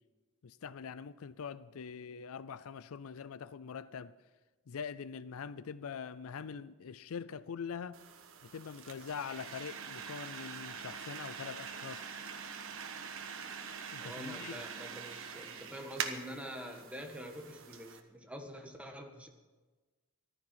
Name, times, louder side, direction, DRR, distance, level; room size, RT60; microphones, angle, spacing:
voice 1, 0.4-4.1 4.7-8.0 8.4-12.1 13.9-14.6, left 6 dB, 70° left, 0.5 m, -43 dB
sound 1, 7.9-18.0, right 7 dB, 65° right, 1.3 m, -44 dB
voice 2, 14.0-19.3, equal, 5° right, 1.6 m, -46 dB
14.5 x 12.5 x 5.8 m
head